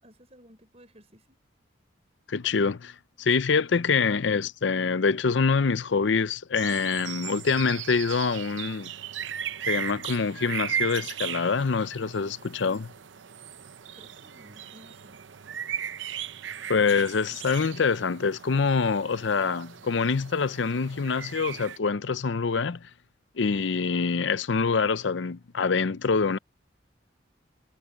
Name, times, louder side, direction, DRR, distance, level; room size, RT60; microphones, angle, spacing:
voice 1, 0.0-1.4 13.9-15.3, equal, 35° right, 5.6 m, -55 dB
voice 2, 2.3-8.9 9.7-12.9 16.7-22.9 23.4-26.4, left 5 dB, 75° left, 0.6 m, -25 dB
sound 1, 6.5-21.8, right 9 dB, 80° right, 0.7 m, -37 dB
head